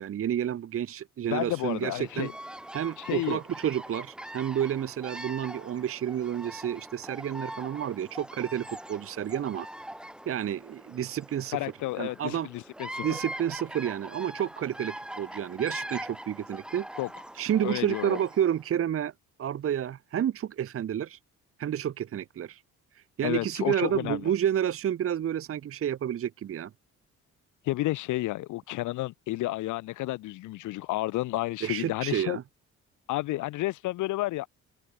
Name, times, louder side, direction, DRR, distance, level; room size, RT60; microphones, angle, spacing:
voice 1, 0.0-2.3 2.7-9.7 10.3-11.7 12.0-12.5 13.0-16.9 17.3-19.1 19.4-21.2 21.6-22.6 22.9-26.7 31.6-32.4, right 10 dB, 50° right, 0.8 m, -30 dB
voice 2, 1.3-2.3 3.0-3.4 11.5-13.1 17.0-17.1 17.6-18.2 23.2-24.2 27.6-32.4 33.1-34.5, left 17 dB, 80° left, 0.6 m, -31 dB
Bird vocalization bird call bird song, 1.4-18.6, right 1 dB, 5° right, 0.4 m, -42 dB
open air
cardioid pair, 90°, 30 cm